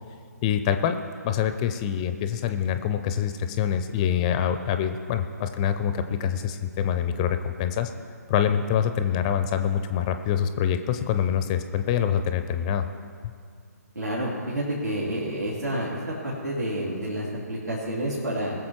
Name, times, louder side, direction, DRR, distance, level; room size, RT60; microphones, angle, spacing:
voice 1, 0.4-1.0 1.2-7.9 8.3-12.9, left 9 dB, 20° left, 9 dB, 0.5 m, -25 dB
voice 2, 13.9-15.9 16.4-18.5, right 1 dB, 80° right, -8 dB, 3.0 m, -29 dB
20.5 x 7.3 x 4.6 m, 2.2 s
figure-of-eight pair, 135°, 9 cm